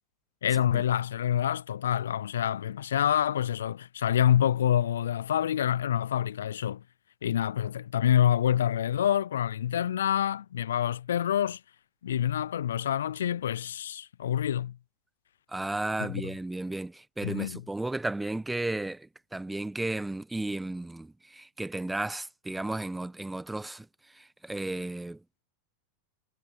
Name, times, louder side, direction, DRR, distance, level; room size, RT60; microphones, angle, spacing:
voice 1, 0.4-6.8 7.2-11.6 12.0-14.8 16.0-16.2 17.2-17.6, left 10 dB, 75° left, 0.5 m, -27 dB
voice 2, 15.5-23.9 24.1-25.2, right 2 dB, 5° right, 1.4 m, -34 dB
hypercardioid pair, 90°, 0 cm